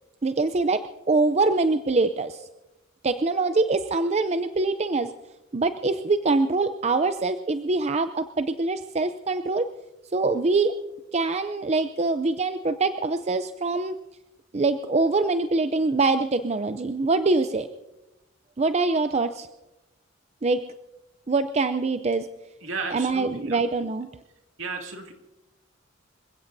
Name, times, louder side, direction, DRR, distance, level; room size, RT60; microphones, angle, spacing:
voice 1, 0.2-2.5 3.0-5.1 5.5-9.7 10.1-10.8 11.1-14.0 14.5-17.7 18.6-19.5 20.4-20.6 21.3-22.3 22.9-24.1, right 3 dB, 35° right, 9 dB, 0.5 m, -24 dB
voice 2, 22.6-23.6 24.6-25.1, right 3 dB, 70° right, 2 dB, 2.4 m, -33 dB
27.0 x 16.5 x 2.7 m, 0.97 s
head